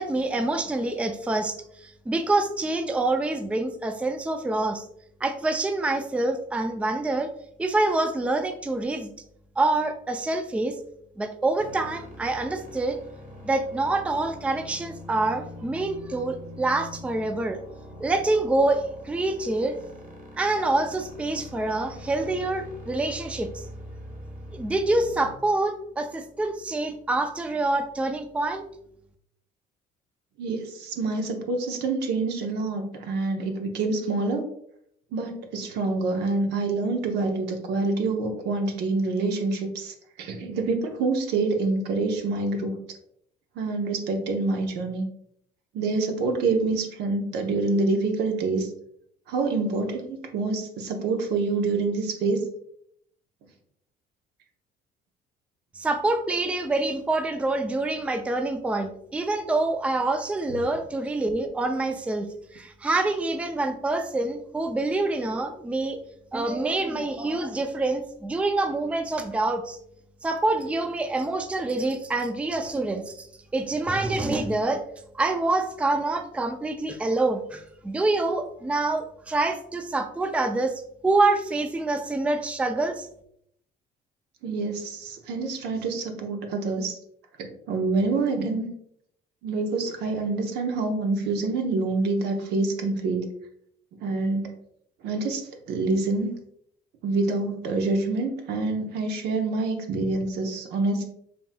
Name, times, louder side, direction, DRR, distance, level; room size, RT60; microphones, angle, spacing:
voice 1, 0.0-1.6 1.8-4.8 5.2-7.3 7.6-9.1 9.6-10.8 11.2-13.0 13.4-17.6 18.0-19.8 20.4-23.5 24.5-28.6 55.8-62.3 62.5-66.0 66.3-69.8 70.2-73.3 73.5-74.8 75.1-80.7 81.0-83.1, right 2 dB, 5° right, 7 dB, 0.4 m, -26 dB
sound 1, 11.6-25.3, left 1 dB, 55° right, 1.4 m, -43 dB
voice 2, 30.4-34.5 35.1-42.8 43.6-45.0 45.7-48.7 49.3-52.5 84.4-87.0 87.4-88.7 89.4-93.3 94.0-94.5 95.0-96.4 97.0-101.0, right 3 dB, 80° right, 4 dB, 0.8 m, -26 dB
5.3 x 2.9 x 2.2 m, 0.70 s
cardioid pair, 110°, 17 cm